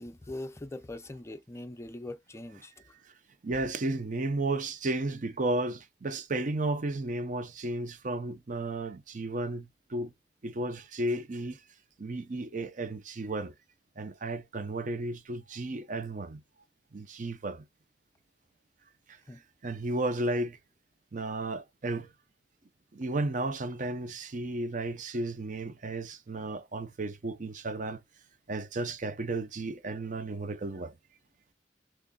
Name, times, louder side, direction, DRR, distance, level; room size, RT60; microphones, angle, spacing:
voice 1, 0.0-2.7 19.3-19.4, left 1 dB, 15° left, 0.5 m, -41 dB
voice 2, 3.4-10.1 10.4-11.6 12.0-13.5 14.0-16.4 16.9-17.6 19.1-19.2 19.6-20.6 21.1-22.1 22.9-28.0 28.5-30.9, right 2 dB, 45° right, 0.6 m, -33 dB
3.7 x 3.1 x 2.2 m
head